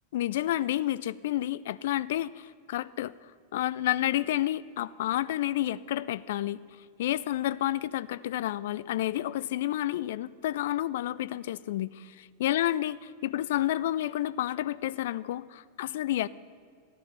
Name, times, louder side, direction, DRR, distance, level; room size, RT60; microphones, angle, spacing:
voice 1, 0.1-3.1 3.5-6.6 7.0-13.0 13.2-16.3, left 13 dB, 60° left, 17 dB, 0.3 m, -30 dB
14.0 x 11.5 x 5.8 m, 2.2 s
figure-of-eight pair, 90°, 0 cm